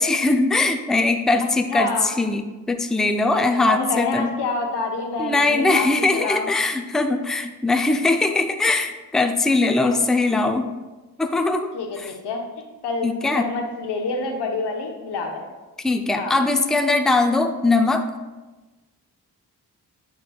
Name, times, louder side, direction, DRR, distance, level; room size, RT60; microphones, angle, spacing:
voice 1, 0.0-4.3 5.2-10.7 11.2-11.7 12.0-12.1 13.0-13.4 15.8-18.1, left 3 dB, ahead, 6 dB, 0.4 m, -21 dB
voice 2, 1.4-2.1 3.3-6.5 9.6-10.0 11.7-12.4 12.8-13.1 13.3-15.5 16.1-16.3, left 3 dB, 90° left, 3 dB, 0.9 m, -28 dB
8.8 x 4.6 x 2.3 m, 1.2 s
cardioid pair, 55°, 39 cm